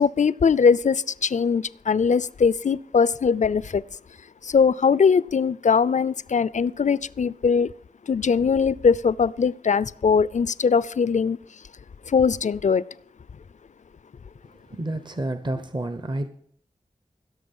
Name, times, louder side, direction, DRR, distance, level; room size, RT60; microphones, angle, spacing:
voice 1, 0.0-3.8 4.4-7.7 8.1-11.4 12.1-12.8, left 6 dB, 65° left, 0.4 m, -21 dB
voice 2, 14.7-16.3, right 1 dB, 35° right, 0.8 m, -29 dB
16.0 x 6.8 x 5.4 m
wide cardioid pair, 55°, 13 cm